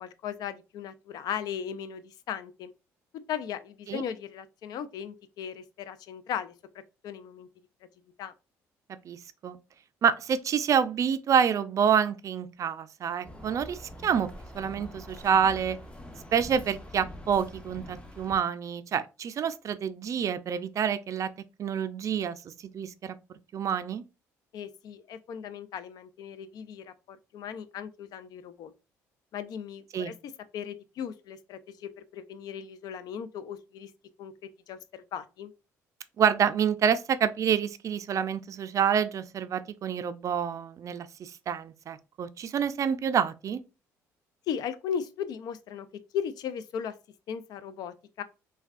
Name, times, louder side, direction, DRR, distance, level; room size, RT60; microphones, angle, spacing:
voice 1, 0.0-2.7 3.3-6.5 7.0-7.5 8.2-8.3 24.5-28.7 29.3-33.9 34.2-34.3 34.7-35.5 44.5-45.9 46.1-46.9 47.3-48.2, left 8 dB, 70° left, 0.4 m, -37 dB
voice 2, 10.0-14.3 14.5-15.8 16.3-21.3 21.6-22.4 22.7-23.2 23.5-24.0 29.9-30.1 36.2-43.6, right 7 dB, 50° right, 0.3 m, -27 dB
sound 1, 13.2-18.4, left 1 dB, 15° left, 0.6 m, -45 dB
3.4 x 2.2 x 2.4 m
supercardioid pair, 70°, 7 cm